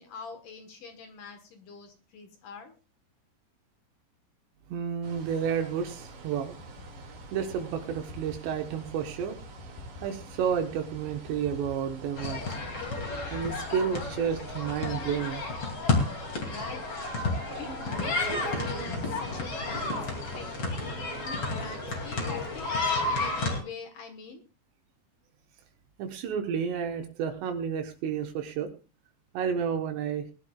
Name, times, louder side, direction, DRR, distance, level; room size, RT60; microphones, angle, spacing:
voice 1, 0.0-2.7 16.4-16.8 17.6-20.0 20.3-20.5 21.2-22.8 23.1-24.4, left 5 dB, 65° left, 6 dB, 2.3 m, -44 dB
voice 2, 4.7-6.6 7.3-9.4 10.0-12.6 13.3-15.4 26.0-28.7 29.3-30.2, right 7 dB, 75° right, 5 dB, 3.3 m, -31 dB
sound 1, 5.0-23.6, right 4 dB, 55° right, 3.3 m, -45 dB
sound 2, 6.6-15.1, left 4 dB, 90° left, 7.5 m, -47 dB
sound 3, 12.2-23.6, left 3 dB, 35° left, 2.7 m, -31 dB
21.5 x 11.5 x 2.3 m, 0.31 s
omnidirectional pair, 5.1 m